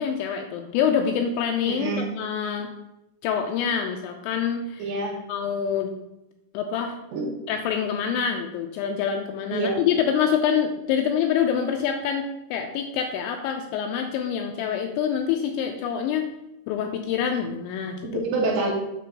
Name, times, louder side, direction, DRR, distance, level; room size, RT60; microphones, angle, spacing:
voice 1, 0.0-2.7 3.2-4.8 5.3-5.9 6.5-7.0 7.5-16.3 16.7-18.2, left 7 dB, 85° left, 4 dB, 2.7 m, -26 dB
voice 2, 1.6-2.1 4.8-5.2 7.1-7.3 9.5-9.8 18.0-18.7, right 3 dB, 70° right, -1 dB, 3.0 m, -26 dB
8.5 x 3.3 x 6.6 m, 0.92 s
omnidirectional pair, 5.7 m